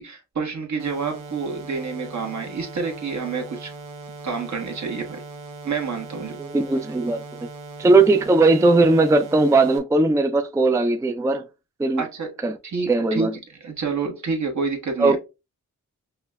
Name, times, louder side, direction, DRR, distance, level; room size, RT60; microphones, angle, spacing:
voice 1, 0.0-3.7 4.2-5.2 5.6-6.4 12.0-12.3 12.6-13.3 13.6-15.2, right 5 dB, 60° right, 1.2 m, -28 dB
sound 1, 0.8-9.8, right 3 dB, 90° right, 0.8 m, -39 dB
voice 2, 6.4-7.2 7.8-11.4 11.8-12.0 12.4-12.6 12.9-13.3 15.0-15.2, right 3 dB, 10° right, 0.4 m, -18 dB
5.4 x 2.1 x 2.3 m
cardioid pair, 70°, 31 cm